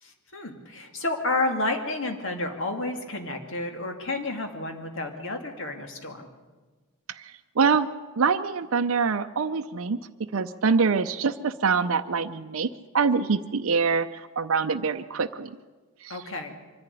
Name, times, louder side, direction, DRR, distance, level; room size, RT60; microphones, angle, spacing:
voice 1, 0.0-6.3 16.1-16.5, left 2 dB, 60° left, 4 dB, 2.4 m, -30 dB
voice 2, 7.6-7.9 8.2-10.0 10.3-12.7 12.9-15.5 16.0-16.2, right 5 dB, 65° right, 6 dB, 0.6 m, -24 dB
24.0 x 11.0 x 9.9 m, 1.3 s
head